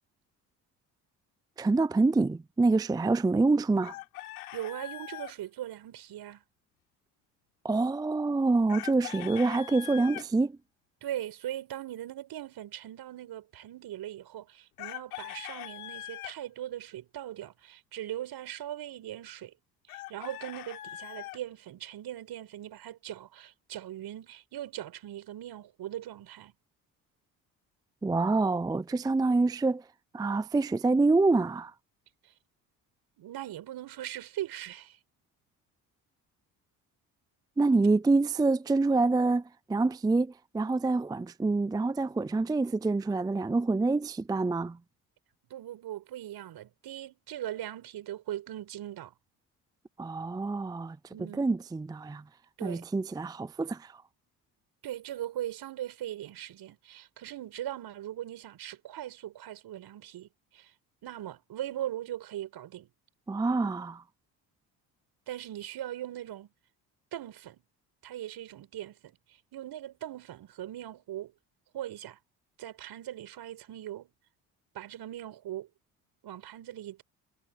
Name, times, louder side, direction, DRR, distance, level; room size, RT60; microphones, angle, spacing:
voice 1, 1.6-4.0 7.6-10.6 28.0-29.8 30.1-31.7 37.6-44.8 50.0-52.2 52.6-54.0 63.3-64.0, right 3 dB, 10° right, 0.5 m, -26 dB
Chicken rooster, 3.8-5.3 8.7-10.3 14.8-16.3 19.9-21.4, left 16 dB, 90° left, 4.5 m, -42 dB
voice 2, 4.5-6.4 11.0-19.5 19.9-26.5 33.2-35.0 45.5-49.1 51.1-51.4 52.6-52.9 54.8-60.3 60.5-60.7 61.0-62.9 65.3-66.5 67.1-67.6 68.0-69.2 69.5-71.3 71.7-72.2 72.6-74.1 74.7-75.7 76.2-77.0, right 12 dB, 60° right, 5.7 m, -40 dB
hypercardioid pair, 60°, 42 cm